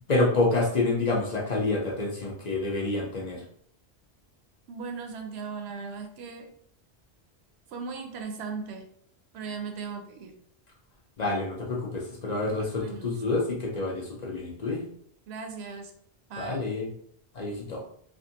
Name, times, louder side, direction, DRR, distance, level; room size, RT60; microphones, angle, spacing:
voice 1, 0.1-3.4 11.2-14.8 16.4-16.9 17.3-17.8, left 2 dB, 50° left, -1 dB, 0.6 m, -28 dB
voice 2, 4.7-6.5 7.7-8.9 9.3-10.4 12.7-13.2 15.3-15.9 16.3-16.7, right 5 dB, 90° right, 4 dB, 0.8 m, -37 dB
2.6 x 2.4 x 2.7 m, 0.65 s
omnidirectional pair, 1.0 m